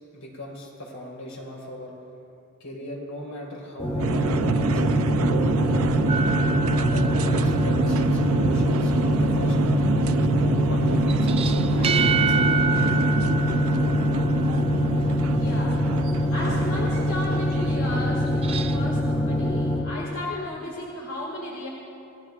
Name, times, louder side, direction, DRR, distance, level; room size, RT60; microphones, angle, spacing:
voice 1, 0.1-1.9 2.6-6.2 6.9-9.6 10.6-12.9, left 1 dB, 85° left, -3 dB, 4.4 m, -38 dB
sound 1, 3.8-19.8, left 1 dB, 30° left, 3.3 m, -24 dB
sound 2, 4.0-19.0, right 4 dB, 90° right, 0.5 m, -27 dB
sound 3, 6.1-8.1 11.1-14.7 18.3-18.8, right 5 dB, 25° right, 0.4 m, -28 dB
voice 2, 15.3-15.9 16.3-21.7, left 1 dB, 65° left, -4 dB, 2.0 m, -34 dB
27.0 x 17.0 x 2.4 m, 2.8 s
head